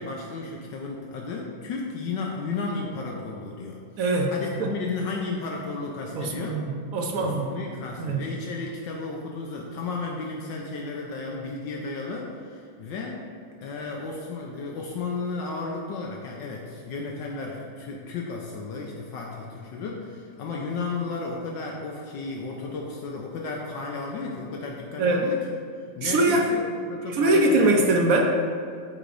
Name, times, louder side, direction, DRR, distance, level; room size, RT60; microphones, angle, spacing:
voice 1, 0.0-3.8 4.3-6.6 7.2-13.3 13.6-25.4 26.0-26.6 26.9-27.7, left 3 dB, 75° left, -1 dB, 1.4 m, -33 dB
voice 2, 4.0-4.3 4.6-4.7 6.2-6.6 6.9-7.5 8.0-8.2 25.0-25.2 26.0-26.4 27.1-28.4, right 2 dB, 65° right, 1 dB, 0.9 m, -22 dB
12.5 x 5.0 x 2.6 m, 2.3 s
omnidirectional pair, 2.0 m